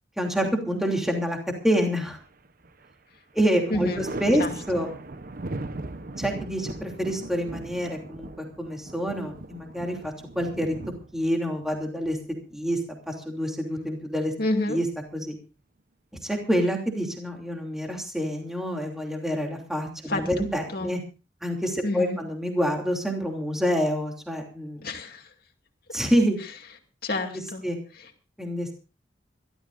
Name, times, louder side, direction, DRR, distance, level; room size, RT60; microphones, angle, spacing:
voice 1, 0.2-1.4 1.6-2.2 3.3-4.9 6.2-10.8 11.1-12.2 12.5-14.3 14.7-14.9 15.1-15.4 16.2-21.0 21.4-24.8 25.9-26.4 27.6-27.8 28.4-28.7, equal, 5° right, 1 dB, 3.0 m, -27 dB
Thunder, 2.2-2.9 3.3-12.9 14.4-15.2, right 2 dB, 50° right, 0.9 m, -39 dB
voice 2, 3.7-4.0 4.4-4.9 14.4-14.8 20.1-20.9 21.8-22.2 24.8-25.3 27.0-27.6 28.0-28.1, left 2 dB, 55° left, 2 dB, 2.5 m, -29 dB
26.0 x 13.0 x 2.6 m, 0.33 s
head